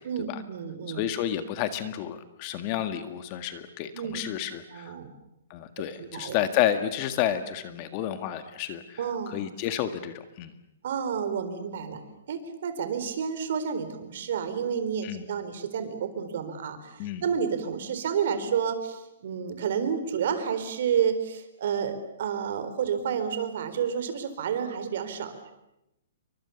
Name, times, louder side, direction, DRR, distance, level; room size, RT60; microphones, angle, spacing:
voice 1, 0.0-1.0 3.9-4.2 4.7-5.1 6.0-6.3 9.0-9.4 10.8-12.0 12.3-25.5, right 7 dB, 55° right, 9 dB, 4.2 m, -30 dB
voice 2, 0.9-5.0 5.5-10.5 15.0-15.3 17.0-17.2, left 11 dB, 30° left, 9 dB, 1.8 m, -30 dB
29.0 x 24.0 x 7.2 m, 0.88 s
hypercardioid pair, 165°, 0 cm